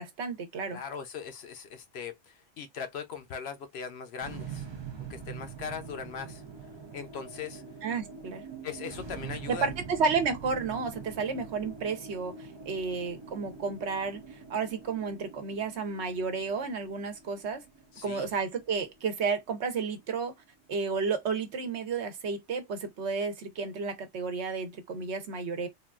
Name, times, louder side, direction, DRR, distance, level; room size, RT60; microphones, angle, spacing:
voice 1, 0.0-0.8 7.8-8.4 9.5-17.6 18.0-20.3 20.7-25.7, right 5 dB, 65° right, 1.0 m, -32 dB
voice 2, 0.7-4.6 5.1-6.4 6.9-7.6 8.6-9.7 17.9-18.3, left 6 dB, 65° left, 0.8 m, -39 dB
sound 1, 4.2-20.6, right 5 dB, 45° right, 0.3 m, -44 dB
3.6 x 2.3 x 2.3 m
omnidirectional pair, 1.3 m